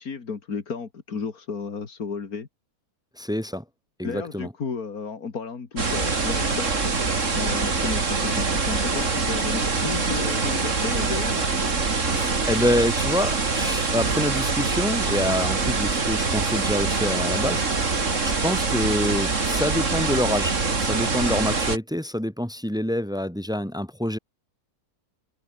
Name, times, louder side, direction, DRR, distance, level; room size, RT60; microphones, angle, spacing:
voice 1, 0.0-2.5 4.0-6.8 7.3-11.5, left 5 dB, 65° left, 2.7 m, -33 dB
voice 2, 3.2-3.6 4.0-4.5 12.1-24.2, left 1 dB, ahead, 3.1 m, -27 dB
sound 1, 5.8-21.8, right 4 dB, 50° right, 3.0 m, -24 dB
omnidirectional pair, 1.7 m